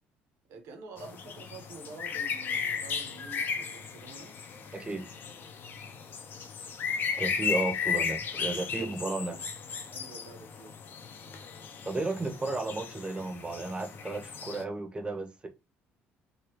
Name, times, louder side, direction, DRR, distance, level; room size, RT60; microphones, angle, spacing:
voice 1, 0.5-4.4 8.3-9.4 9.9-10.7 11.2-11.5, right 3 dB, 75° right, 1.1 m, -48 dB
sound 1, 1.0-14.6, left 6 dB, 50° left, 0.5 m, -35 dB
voice 2, 4.7-5.0 7.2-9.3 11.8-15.5, right 2 dB, 20° right, 0.7 m, -33 dB
3.1 x 2.6 x 2.9 m
supercardioid pair, 85°, 5 cm